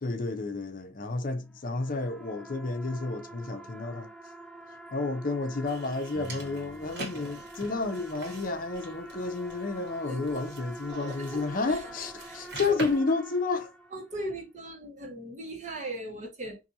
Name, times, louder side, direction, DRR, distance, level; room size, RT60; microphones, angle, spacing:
voice 1, 0.0-4.1 4.9-13.7, left 3 dB, 50° left, 0.6 m, -31 dB
sound 1, 1.5-14.2, right 1 dB, 5° left, 0.3 m, -46 dB
sound 2, 5.6-13.0, right 1 dB, 70° right, 1.4 m, -44 dB
sound 3, 6.1-7.7 7.9-9.7, right 1 dB, 15° right, 0.9 m, -53 dB
voice 2, 10.1-10.4 11.1-11.8 12.3-12.7 13.9-16.6, right 1 dB, 40° right, 1.2 m, -39 dB
2.8 x 2.6 x 2.6 m
head